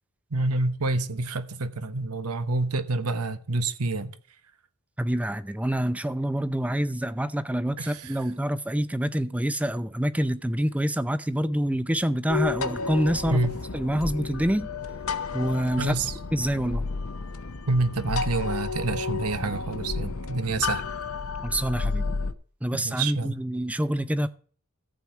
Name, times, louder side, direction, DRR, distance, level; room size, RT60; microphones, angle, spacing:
voice 1, 0.3-4.1 7.8-8.2 13.3-13.6 15.8-16.1 17.7-20.8 22.7-23.4, right 3 dB, 85° right, 1.1 m, -28 dB
voice 2, 5.0-13.4 13.7-14.7 15.3-16.0 16.3-16.8 21.4-22.0 22.6-24.3, equal, 5° right, 0.6 m, -26 dB
sound 1, 12.3-22.3, left 4 dB, 70° left, 0.9 m, -31 dB
14.0 x 4.7 x 8.0 m
head